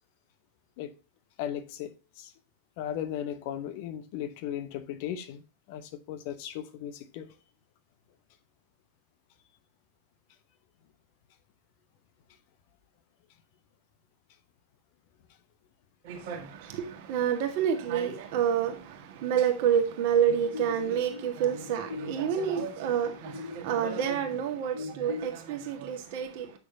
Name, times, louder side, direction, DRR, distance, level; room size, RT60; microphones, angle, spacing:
voice 1, 1.4-2.3 2.8-5.4 5.7-7.3, left 10 dB, 45° left, 1.0 m, -36 dB
voice 2, 16.0-26.6, right 8 dB, 50° right, 1.6 m, -28 dB
sound 1, 20.3-25.3, left 5 dB, 75° left, 1.0 m, -41 dB
8.4 x 6.4 x 2.8 m
figure-of-eight pair, 90°, 0 cm